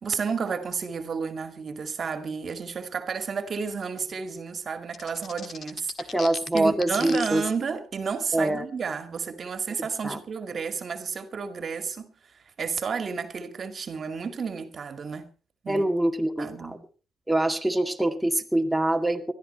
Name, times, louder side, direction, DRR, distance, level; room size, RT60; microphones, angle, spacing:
voice 1, 0.0-6.1 6.5-12.1 12.6-15.3 15.6-15.9 16.4-16.8, right 5 dB, 45° right, 2.1 m, -31 dB
sound 1, 4.9-7.3, left 6 dB, 55° left, 1.7 m, -37 dB
voice 2, 6.1-7.4 8.3-8.6 9.8-10.2 15.7-16.8 17.3-19.3, right 1 dB, ahead, 2.1 m, -25 dB
19.5 x 13.0 x 4.3 m
cardioid pair, 90°, 0 cm